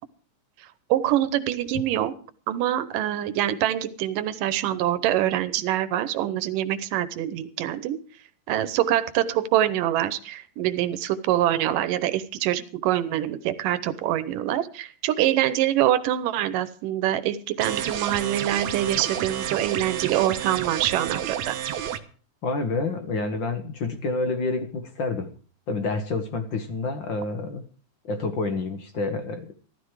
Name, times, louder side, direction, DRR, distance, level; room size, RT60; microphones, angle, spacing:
voice 1, 0.9-2.1 2.5-8.0 8.5-21.6, right 12 dB, 90° right, 13 dB, 2.6 m, -25 dB
sound 1, 17.6-22.0, right 10 dB, 65° right, 2.3 m, -30 dB
voice 2, 22.4-25.3 25.7-27.7 28.0-29.5, left 3 dB, 50° left, 7 dB, 1.6 m, -28 dB
14.0 x 13.5 x 4.8 m, 0.40 s
omnidirectional pair, 3.7 m